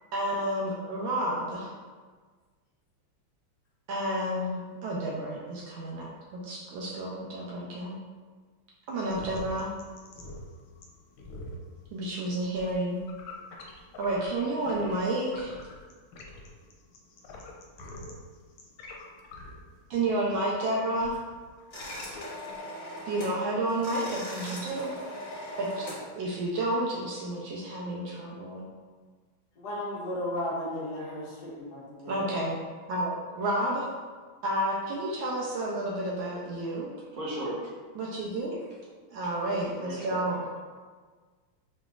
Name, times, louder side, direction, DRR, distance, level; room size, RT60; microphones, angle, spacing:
voice 1, 0.1-1.7 3.9-8.0 8.9-9.7 11.9-13.0 14.0-15.6 19.9-21.2 23.1-24.9 25.6-28.7 31.0-31.1 32.0-32.6 32.9-33.9 34.4-36.9 38.0-38.7 39.1-40.4, right 1 dB, 75° right, -4 dB, 1.2 m, -31 dB
sound 1, 8.9-15.0 15.3-22.6, left 2 dB, 85° left, 1.6 m, -45 dB
sound 2, 21.7-23.4 23.7-26.0, left 1 dB, 40° left, 0.5 m, -39 dB
voice 2, 29.6-32.2, left 1 dB, 55° left, -5 dB, 1.3 m, -35 dB
voice 3, 37.1-37.7 39.8-40.2, right 1 dB, 50° right, -7 dB, 0.9 m, -35 dB
5.0 x 3.1 x 2.4 m, 1.5 s
omnidirectional pair, 2.4 m